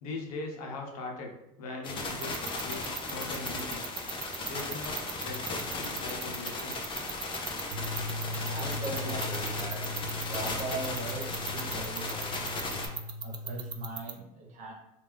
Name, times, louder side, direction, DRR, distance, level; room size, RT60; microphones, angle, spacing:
voice 1, 0.0-3.9 4.5-6.8, left 3 dB, 85° left, 0 dB, 0.9 m, -40 dB
sound 1, 1.8-12.9, left 2 dB, 25° left, 0.7 m, -36 dB
sound 2, 2.2-14.1, right 8 dB, 25° right, 0.4 m, -37 dB
sound 3, 7.7-14.0, left 2 dB, 80° right, 0.7 m, -39 dB
voice 2, 8.5-9.9 10.3-12.8 13.2-14.7, right 2 dB, 40° right, 0 dB, 1.2 m, -40 dB
3.4 x 2.6 x 3.4 m, 0.87 s
supercardioid pair, 110°, 18 cm